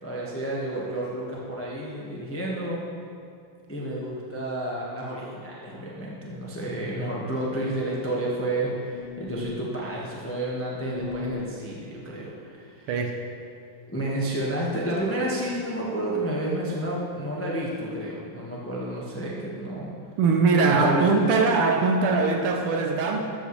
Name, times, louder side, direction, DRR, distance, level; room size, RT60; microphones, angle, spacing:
voice 1, 0.0-2.8 3.7-12.9 13.9-19.9 20.6-21.1, right 1 dB, 10° left, -4 dB, 0.7 m, -30 dB
sound 1, 8.9-9.7 10.8-11.5, left 6 dB, 80° left, 1.5 m, -37 dB
voice 2, 20.2-23.2, right 4 dB, 85° right, 3 dB, 1.6 m, -21 dB
13.5 x 7.9 x 3.1 m, 2.4 s
omnidirectional pair, 2.4 m